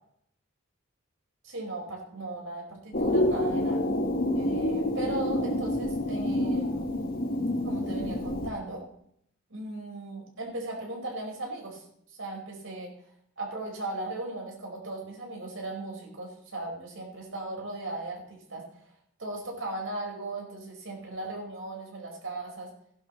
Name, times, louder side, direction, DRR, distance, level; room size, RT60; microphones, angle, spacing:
voice 1, 1.4-3.8 4.3-7.0 7.6-8.8 9.5-12.9 13.4-18.9 19.2-22.7, right 2 dB, 85° right, -1 dB, 5.0 m, -37 dB
sound 1, 2.9-8.5, left 1 dB, 45° left, 1.5 m, -28 dB
16.5 x 11.5 x 3.2 m, 0.69 s
head